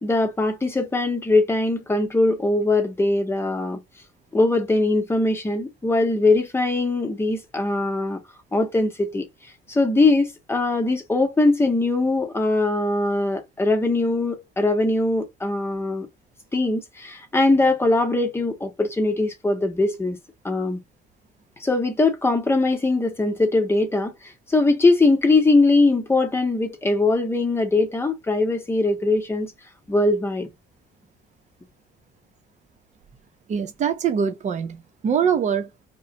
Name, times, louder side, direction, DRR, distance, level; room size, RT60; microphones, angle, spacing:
voice 1, 0.0-3.8 4.3-8.2 8.5-9.2 9.7-16.1 16.5-20.2 20.4-20.8 21.6-24.1 24.5-29.5 29.9-30.5, left 2 dB, 15° left, 0.9 m, -21 dB
voice 2, 33.5-35.9, right 7 dB, 45° right, 0.8 m, -24 dB
2.4 x 2.2 x 3.8 m
cardioid pair, 110°, 17 cm